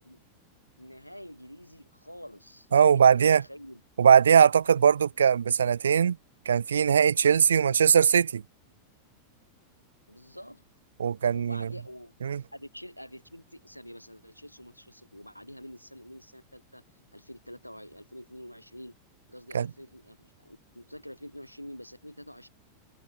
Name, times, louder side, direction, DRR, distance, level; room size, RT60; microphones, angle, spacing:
voice 1, 0.8-3.8 7.2-7.7 10.1-10.6 11.3-12.1 12.5-16.8 17.1-18.9 19.3-22.5, equal, 90° left, 4.9 m, -46 dB
voice 2, 2.7-3.4 4.0-6.2 6.5-8.4 11.0-11.7 12.2-12.4 19.5-19.7, right 7 dB, 70° right, 0.6 m, -20 dB
figure-of-eight pair, 90°, 0 cm